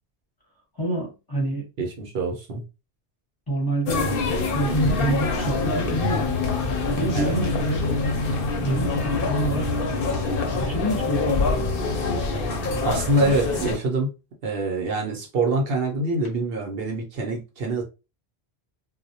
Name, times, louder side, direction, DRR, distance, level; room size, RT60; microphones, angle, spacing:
voice 1, 0.8-1.6 3.5-6.3 6.9-7.9 8.6-10.0 10.6-11.6, right 1 dB, 25° left, 0.8 m, -27 dB
voice 2, 1.8-2.6 7.1-7.3 12.8-14.1 14.4-17.8, right 2 dB, 65° right, 0.8 m, -25 dB
sound 1, 3.9-13.8, left 3 dB, 65° left, 0.8 m, -25 dB
2.2 x 2.1 x 2.7 m
omnidirectional pair, 1.1 m